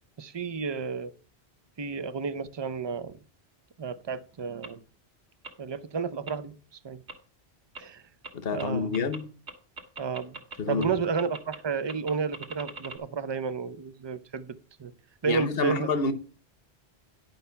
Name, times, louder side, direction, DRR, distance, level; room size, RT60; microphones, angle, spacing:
voice 1, 0.2-1.1 1.8-3.2 3.8-4.8 5.6-6.5 6.8-7.0 7.8-8.0 8.5-9.0 10.0-10.3 10.7-14.9 15.2-15.9, right 5 dB, 35° right, 0.4 m, -31 dB
sound 1, 4.6-4.7 5.4-5.5 6.3-6.4 7.1-7.2 7.7-7.8 8.2-8.3 8.6-8.7 8.9-9.2 9.5-10.6 10.8-10.9 11.2-11.6 11.9-13.0, right 4 dB, 80° right, 1.7 m, -40 dB
voice 2, 8.3-9.3 10.6-11.0 15.3-16.1, left 4 dB, 60° left, 1.1 m, -28 dB
10.5 x 5.3 x 5.7 m
omnidirectional pair, 1.1 m